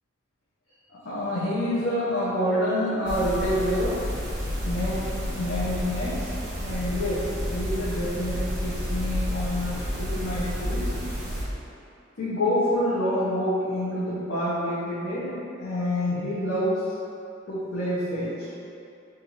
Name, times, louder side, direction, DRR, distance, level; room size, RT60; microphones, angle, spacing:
voice 1, 1.0-4.0 4.6-6.3 6.6-10.9 12.2-16.8 17.5-18.5, left 1 dB, 70° left, -11 dB, 0.7 m, -27 dB
sound 1, 3.1-11.4, equal, 70° right, 0.9 m, -30 dB
4.2 x 2.5 x 2.8 m, 2.6 s
head